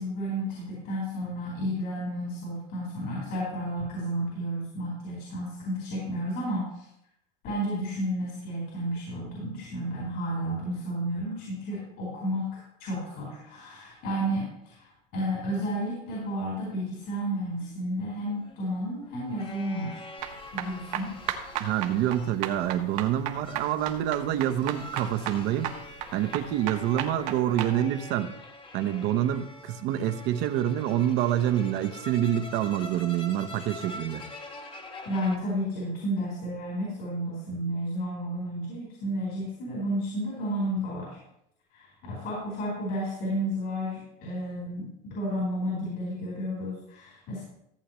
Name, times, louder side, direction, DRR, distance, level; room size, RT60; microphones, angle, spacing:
voice 1, 0.0-6.9 7.4-20.1 20.5-21.1 35.0-41.2 41.7-47.4, equal, 55° left, -5 dB, 4.3 m, -32 dB
sound 1, 17.6-35.4, left 2 dB, 25° left, 1.2 m, -45 dB
sound 2, 20.2-27.7, right 11 dB, 80° right, 1.3 m, -35 dB
voice 2, 21.6-25.7 26.1-28.3 28.7-34.2, right 11 dB, 60° right, 8 dB, 0.9 m, -27 dB
15.0 x 8.5 x 3.1 m, 0.79 s
cardioid pair, 145°, 21 cm